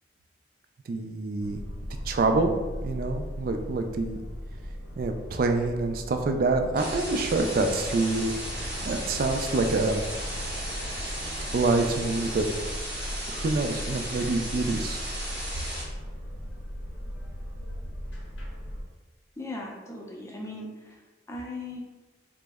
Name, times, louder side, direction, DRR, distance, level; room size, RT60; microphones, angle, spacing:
voice 1, 0.9-1.6 2.1-2.6 2.8-4.2 5.0-10.0 11.5-12.5 13.3-15.0, right 3 dB, 50° right, 5 dB, 0.3 m, -26 dB
sound 1, 1.4-18.8, equal, 80° left, 0.7 m, -38 dB
sound 2, 6.7-15.8, right 1 dB, 5° right, 0.8 m, -36 dB
sound 3, 6.9-12.7, right 1 dB, 85° right, 0.7 m, -43 dB
voice 2, 19.4-21.0 21.3-21.8, left 2 dB, 15° left, -1 dB, 0.4 m, -38 dB
3.7 x 2.0 x 3.4 m, 1.2 s
head